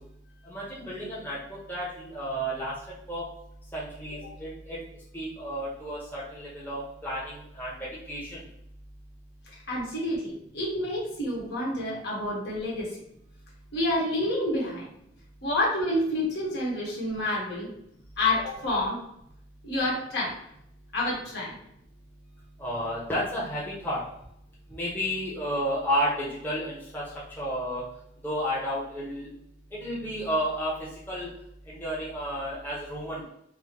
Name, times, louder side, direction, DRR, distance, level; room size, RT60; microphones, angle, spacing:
voice 1, 0.4-2.7 3.1-3.2 3.7-4.8 5.1-7.7 8.1-8.4 22.6-24.0 24.7-27.0 27.4-27.8 28.2-29.3 29.8-30.7 31.1-31.3 31.7-33.2, equal, 10° left, -7 dB, 0.8 m, -31 dB
voice 2, 9.5-12.9 13.7-14.9 15.4-17.7 18.2-19.0 19.6-20.4 20.9-21.6, left 1 dB, 65° left, -5 dB, 1.3 m, -28 dB
4.8 x 2.0 x 2.9 m, 0.75 s
head